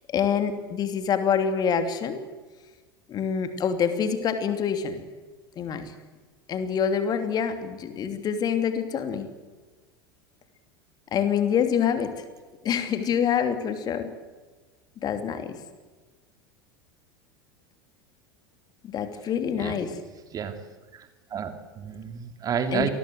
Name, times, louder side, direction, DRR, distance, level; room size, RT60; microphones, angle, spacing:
voice 1, 0.1-2.2 3.1-5.0 5.6-5.9 6.5-9.3 11.1-12.1 12.6-14.1 15.0-15.6 18.8-20.0 22.7-22.9, left 7 dB, 35° left, 9 dB, 2.9 m, -26 dB
voice 2, 20.9-22.9, right 7 dB, 30° right, 8 dB, 2.8 m, -30 dB
27.5 x 20.5 x 8.1 m, 1.3 s
figure-of-eight pair, 80°, 12 cm